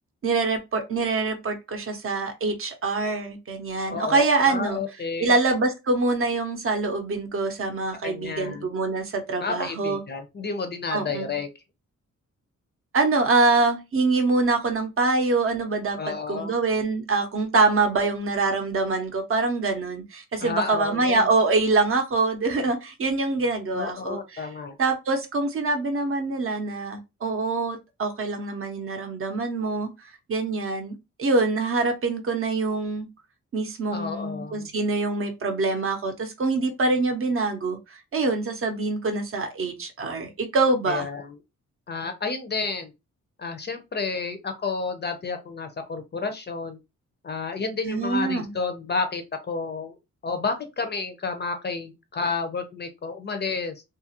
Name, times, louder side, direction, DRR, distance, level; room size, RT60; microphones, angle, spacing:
voice 1, 0.2-4.8 5.2-10.0 10.9-11.3 12.9-16.0 16.3-24.5 24.8-29.9 30.3-33.1 33.5-37.8 38.1-41.1 47.8-48.5, right 3 dB, 45° right, 0.6 m, -25 dB
voice 2, 3.9-5.3 8.0-8.7 9.4-11.5 16.0-16.6 20.4-21.3 23.7-24.8 33.9-34.7 40.9-41.3 41.9-42.9 43.4-46.8 47.2-50.0 50.2-53.8, left 4 dB, 35° left, 0.4 m, -31 dB
2.8 x 2.4 x 2.8 m
wide cardioid pair, 155°, 30 cm